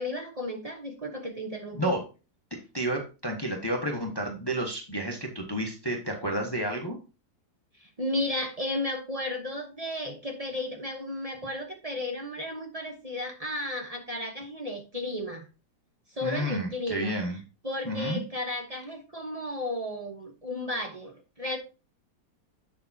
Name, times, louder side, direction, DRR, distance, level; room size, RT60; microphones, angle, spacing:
voice 1, 0.0-2.0 7.7-15.5 16.1-17.1 17.6-21.6, left 1 dB, 25° right, 3 dB, 0.9 m, -34 dB
voice 2, 2.7-7.0 16.2-17.4 17.8-18.2, right 1 dB, 15° left, 2 dB, 1.1 m, -30 dB
7.8 x 6.7 x 2.8 m, 0.31 s
omnidirectional pair, 1.8 m